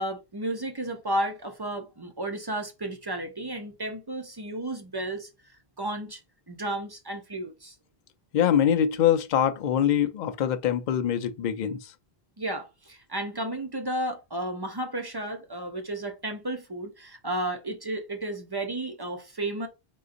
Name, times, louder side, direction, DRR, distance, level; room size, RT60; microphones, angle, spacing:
voice 1, 0.0-5.3 5.8-6.2 6.5-7.8 12.4-19.7, right 1 dB, 30° right, 0.5 m, -33 dB
voice 2, 8.3-11.9, left 9 dB, 55° left, 0.6 m, -24 dB
3.9 x 3.8 x 2.5 m
omnidirectional pair, 1.0 m